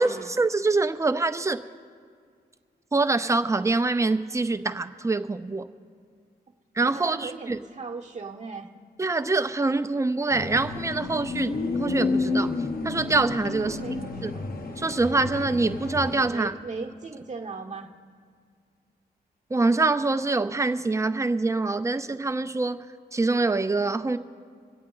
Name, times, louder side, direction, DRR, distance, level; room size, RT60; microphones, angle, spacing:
voice 1, 0.4-1.6 2.9-5.7 6.8-7.6 9.0-11.5 11.8-12.5 12.8-13.8 14.2-14.3 14.8-16.5 19.5-22.8 23.1-24.2, right 3 dB, 15° right, 10 dB, 0.5 m, -25 dB
voice 2, 6.8-8.7 13.6-14.6 16.3-17.9, right 4 dB, 40° right, 0 dB, 1.0 m, -38 dB
sound 1, 10.3-16.3, left 3 dB, 55° left, 1.0 m, -30 dB
25.0 x 8.5 x 3.9 m, 2.1 s
cardioid pair, 75°, 17 cm